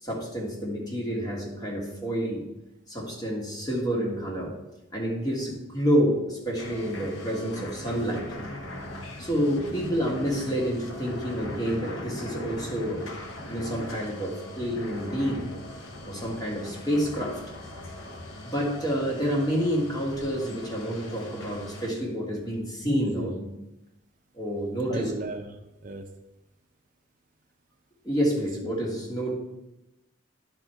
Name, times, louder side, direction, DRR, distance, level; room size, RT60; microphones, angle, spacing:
voice 1, 0.0-2.5 2.9-4.5 4.9-8.3 9.2-13.1 13.5-15.5 16.0-17.4 18.4-23.5 24.3-25.1 28.0-29.3, equal, 20° left, -3 dB, 1.7 m, -28 dB
sound 1, 6.6-21.9, left 1 dB, 85° left, 1.0 m, -40 dB
voice 2, 22.8-23.3 24.9-25.5 25.8-26.1 28.3-28.5 29.3-29.4, right 3 dB, 40° right, 3 dB, 0.6 m, -35 dB
10.5 x 4.2 x 4.4 m, 0.94 s
head